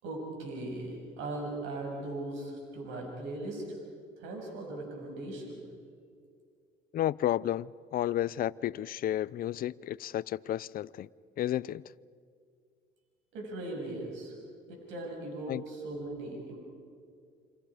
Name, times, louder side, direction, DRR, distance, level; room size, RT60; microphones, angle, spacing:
voice 1, 0.0-3.6 4.2-5.6 13.3-14.4 14.7-16.6, right 2 dB, 80° right, 6.8 m, -39 dB
voice 2, 6.9-11.1 11.4-11.8 15.5-15.6, left 12 dB, 50° left, 0.6 m, -32 dB
28.5 x 26.0 x 5.0 m
cardioid pair, 95°, 19 cm